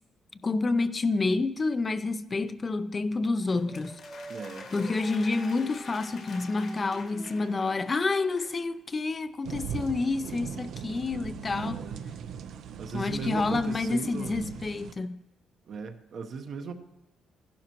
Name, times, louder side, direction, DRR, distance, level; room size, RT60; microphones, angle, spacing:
voice 1, 0.4-4.0 4.7-11.9 12.9-15.2, left 3 dB, 30° left, 0.5 m, -28 dB
Dog, 3.2-8.8, right 1 dB, 5° right, 0.7 m, -47 dB
sound 1, 3.5-8.6, left 5 dB, 65° left, 1.8 m, -48 dB
voice 2, 4.3-4.7 11.6-12.0 12.8-14.4 15.7-16.7, right 5 dB, 60° right, 1.0 m, -37 dB
sound 2, 9.4-14.9, right 7 dB, 75° right, 0.6 m, -39 dB
15.0 x 11.5 x 3.0 m
cardioid pair, 90°, 0 cm